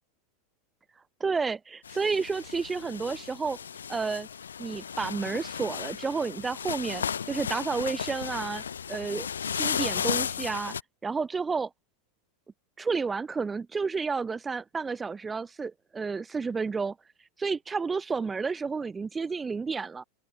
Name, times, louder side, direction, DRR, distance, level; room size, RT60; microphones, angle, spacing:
voice 1, 1.2-3.6 3.9-4.3 4.6-10.7 11.0-11.7 12.8-16.9 17.4-20.0, right 4 dB, 15° right, 3.0 m, -31 dB
sound 1, 1.8-10.8, left 7 dB, 75° left, 7.8 m, -34 dB
figure-of-eight pair, 85°, 0 cm